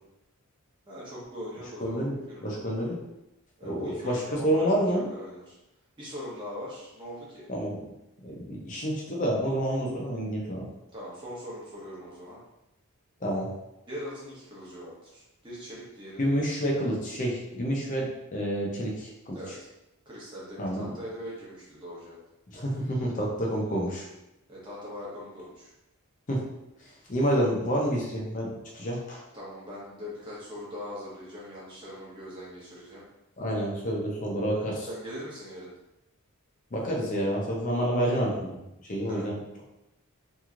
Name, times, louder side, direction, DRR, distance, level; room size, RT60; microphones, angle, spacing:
voice 1, 0.9-2.6 3.6-5.6 6.0-7.4 10.9-12.4 13.9-16.3 19.3-19.5 20.1-22.2 24.5-25.7 29.3-33.0 34.9-35.7 39.0-39.2, equal, 20° right, -7 dB, 0.9 m, -41 dB
voice 2, 1.8-3.0 3.6-5.1 7.5-7.8 8.2-10.7 13.2-13.5 16.2-19.6 20.6-20.9 22.5-24.1 26.3-26.4 26.8-29.2 33.4-34.9 36.7-38.6 38.9-39.4, equal, 35° left, -2 dB, 0.6 m, -29 dB
3.0 x 2.7 x 2.4 m, 0.90 s
head